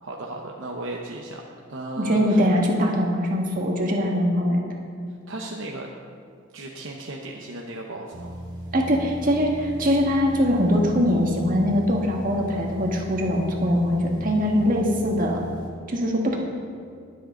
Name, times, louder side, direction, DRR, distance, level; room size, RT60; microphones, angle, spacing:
voice 1, 0.0-1.4 1.7-2.5 5.3-5.9 6.5-8.4, right 2 dB, 60° right, -1 dB, 0.9 m, -35 dB
voice 2, 2.0-4.6 8.7-15.4 15.9-16.4, equal, 40° right, 0 dB, 1.7 m, -22 dB
sound 1, 8.1-15.7, right 1 dB, 20° right, 1.8 m, -37 dB
21.5 x 7.7 x 3.9 m, 2.3 s
head